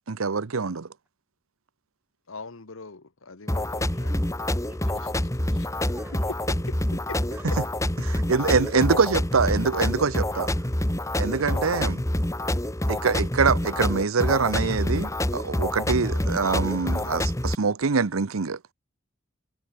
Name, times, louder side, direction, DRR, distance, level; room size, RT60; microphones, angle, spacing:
voice 1, 0.1-0.9 8.0-10.5 11.2-12.0 12.9-18.6, right 5 dB, 90° right, 0.8 m, -24 dB
voice 2, 2.3-4.1 5.5-5.9 6.5-7.2 11.4-11.7, left 3 dB, 80° left, 1.4 m, -42 dB
sound 1, 3.5-17.5, left 1 dB, 15° left, 1.5 m, -27 dB
voice 3, 3.9-5.0 5.9-6.3 7.4-7.5 8.1-8.3 10.3-10.4 11.8-12.3, right 1 dB, 10° right, 3.6 m, -47 dB
head